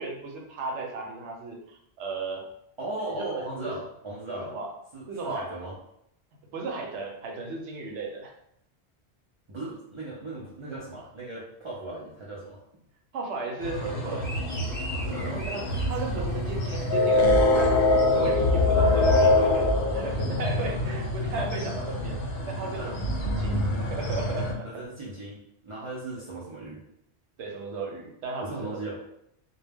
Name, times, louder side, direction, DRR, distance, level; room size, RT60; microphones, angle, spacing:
voice 1, 0.0-2.4 3.1-3.7 4.4-4.7 5.1-5.5 6.5-8.3 13.1-14.4 15.3-17.8 18.1-22.2 22.5-22.9 23.4-23.6 23.9-24.7 27.4-28.8, right 3 dB, 85° right, 1 dB, 0.9 m, -35 dB
voice 2, 2.8-4.5 4.9-5.8 9.5-12.6 14.9-15.4 22.6-22.9 24.6-26.8 28.4-29.0, right 2 dB, 50° right, -7 dB, 0.3 m, -37 dB
sound 1, 13.6-24.5, left 2 dB, 65° left, 0.7 m, -25 dB
sound 2, 14.2-19.5, left 1 dB, 15° left, 0.5 m, -44 dB
2.2 x 2.1 x 3.4 m, 0.76 s
omnidirectional pair, 1.1 m